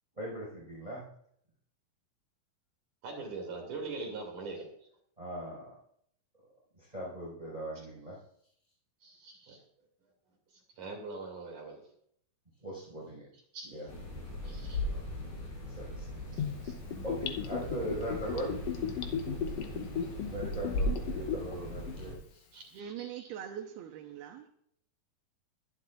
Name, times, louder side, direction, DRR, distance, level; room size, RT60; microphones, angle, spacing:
voice 1, 0.2-1.1 5.2-5.8 6.7-8.2 12.6-13.3 13.6-13.9 15.7-16.1 17.0-18.5 20.2-22.4, right 1 dB, 10° right, -5 dB, 5.1 m, -39 dB
voice 2, 3.0-4.7 9.0-9.6 10.8-11.8 13.5-13.7 14.4-15.1 16.3-16.7 22.5-23.4, right 3 dB, 55° right, 1 dB, 3.9 m, -42 dB
sound 1, 13.9-22.1, left 1 dB, 70° left, 7.6 m, -38 dB
Gurgling / Bathtub (filling or washing), 16.4-21.5 21.9-22.0, left 8 dB, 90° left, 1.4 m, -35 dB
voice 3, 22.7-24.5, right 9 dB, 85° right, 1 dB, 2.8 m, -42 dB
22.5 x 11.5 x 2.5 m, 0.67 s
omnidirectional pair, 4.4 m